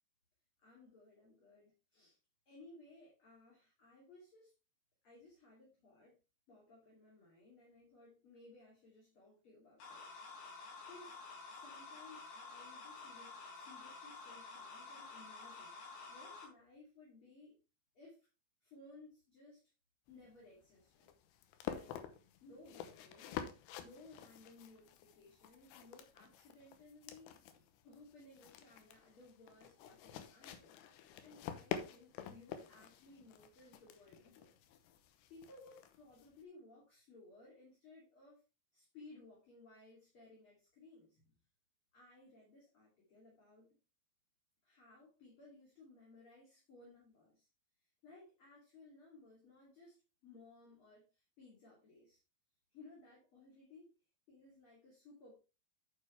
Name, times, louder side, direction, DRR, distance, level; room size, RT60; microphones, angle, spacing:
voice 1, 0.6-2.2 2.5-4.5 5.0-6.1 6.5-10.0 10.8-11.2 11.5-15.7 16.1-17.6 17.9-18.3 18.6-19.6 20.1-21.1 21.6-22.0 22.4-23.4 23.8-30.8 31.2-34.5 35.3-38.4 38.7-41.4 41.9-43.7 44.6-47.5 48.0-50.0 50.2-52.2 52.7-53.9 54.3-55.3, left 2 dB, 35° left, -4 dB, 3.1 m, -60 dB
sound 1, 9.8-16.5, left 4 dB, 55° left, 4.2 m, -51 dB
sound 2, 20.1-36.4, left 9 dB, 85° left, 3.0 m, -49 dB
9.7 x 6.7 x 3.3 m, 0.30 s
omnidirectional pair, 5.0 m